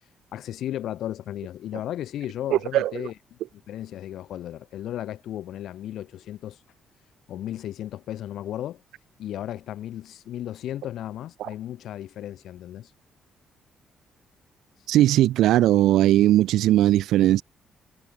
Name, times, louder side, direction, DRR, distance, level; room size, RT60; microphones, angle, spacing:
voice 1, 0.3-6.6 7.3-8.8 9.2-12.9, left 12 dB, 75° left, 3.4 m, -35 dB
voice 2, 2.5-2.9 14.9-17.4, right 14 dB, 85° right, 0.4 m, -19 dB
cardioid pair, 90°, 0 cm